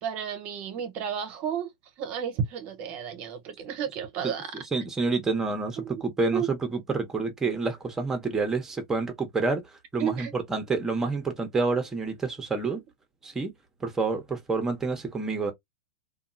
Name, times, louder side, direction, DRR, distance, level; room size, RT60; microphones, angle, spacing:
voice 1, 0.0-1.7 2.0-4.5 5.8-6.0 6.3-6.5 10.0-10.3, right 8 dB, 45° right, 0.8 m, -32 dB
voice 2, 4.2-9.6 9.9-12.8 13.2-13.5 13.8-15.5, right 3 dB, 15° right, 0.9 m, -28 dB
2.8 x 2.3 x 2.5 m
hypercardioid pair, 120°, 4 cm